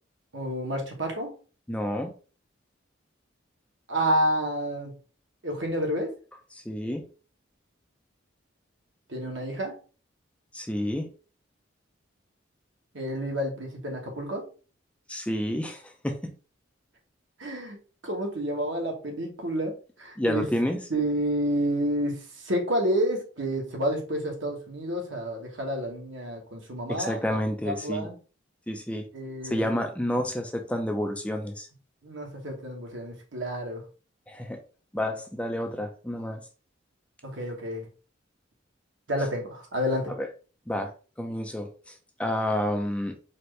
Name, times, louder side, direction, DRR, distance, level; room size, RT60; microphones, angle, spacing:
voice 1, 0.3-1.3 3.9-5.0 5.4-6.1 9.1-9.7 12.9-14.4 17.4-17.8 18.0-19.7 20.0-20.5 20.9-27.4 27.6-28.2 29.1-29.8 32.0-33.8 37.2-37.9 39.1-40.1, equal, 70° right, 1 dB, 1.2 m, -29 dB
voice 2, 1.7-2.1 6.5-7.0 10.5-11.1 15.1-16.2 20.2-20.8 27.0-28.1 28.7-29.1 29.4-31.7 34.3-34.6 34.9-36.4 40.2-40.3 40.7-40.9 41.2-41.7 42.2-43.2, left 1 dB, 5° left, 3 dB, 0.4 m, -29 dB
4.2 x 2.6 x 3.1 m, 0.36 s
head